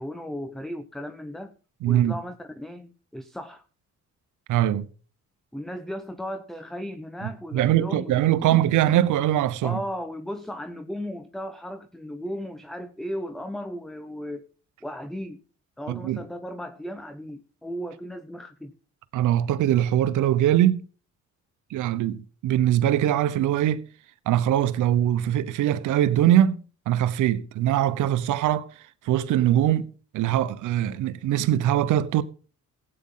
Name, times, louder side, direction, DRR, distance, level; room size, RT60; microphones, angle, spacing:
voice 1, 0.0-1.5 1.9-3.6 5.5-8.1 8.4-8.6 9.6-14.5 14.8-15.4 15.8-18.8, equal, ahead, 0.9 m, -35 dB
voice 2, 1.8-2.1 4.5-4.9 7.2-9.8 15.9-16.2 19.1-20.8 21.7-23.8 24.3-28.7 29.0-29.9 30.1-32.2, right 12 dB, 85° right, 1.0 m, -22 dB
16.0 x 8.8 x 3.8 m
cardioid pair, 90°, 30 cm